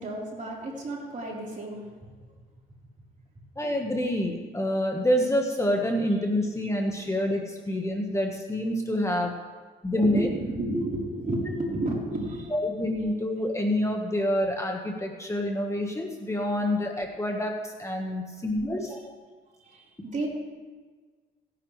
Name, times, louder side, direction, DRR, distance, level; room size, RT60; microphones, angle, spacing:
voice 1, 0.0-2.1 4.0-4.1 7.1-7.2 7.6-7.8 10.0-12.6 12.9-13.0 19.0-19.1 19.6-20.3, right 1 dB, 40° right, -3 dB, 3.9 m, -32 dB
voice 2, 3.6-9.3 9.8-10.3 12.5-19.1, left 1 dB, 15° left, 1 dB, 1.3 m, -27 dB
18.0 x 10.0 x 3.2 m, 1.4 s
cardioid pair, 90°, 20 cm